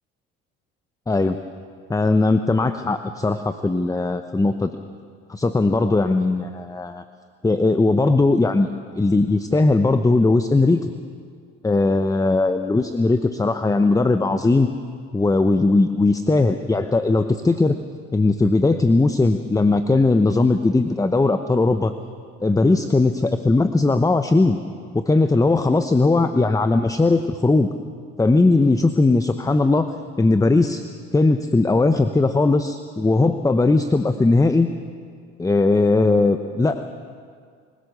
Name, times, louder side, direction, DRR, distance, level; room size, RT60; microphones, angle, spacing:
voice 1, 1.1-1.4 1.9-4.7 5.3-7.0 7.4-8.7 8.9-10.9 11.6-14.7 15.1-17.7 18.1-21.9 22.4-24.6 24.9-27.7 28.2-29.9 30.2-30.8 31.1-34.7 35.4-36.8, left 3 dB, 10° left, 9 dB, 0.9 m, -18 dB
23.5 x 16.5 x 6.8 m, 2.1 s
hypercardioid pair, 75°, 29 cm